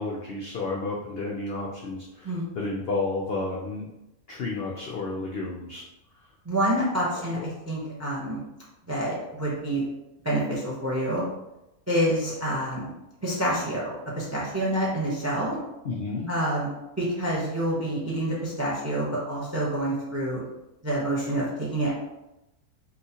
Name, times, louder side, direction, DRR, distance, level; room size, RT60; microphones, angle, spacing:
voice 1, 0.0-3.9 4.3-5.8 7.1-7.5 15.8-16.3, left 3 dB, 75° left, -2 dB, 0.5 m, -31 dB
voice 2, 6.4-8.4 8.9-9.8 10.2-11.3 11.9-12.9 13.2-15.6 16.3-16.7 17.0-20.4 20.8-21.9, right 1 dB, 25° right, -5 dB, 0.3 m, -27 dB
3.8 x 2.4 x 2.7 m, 0.93 s
omnidirectional pair, 1.6 m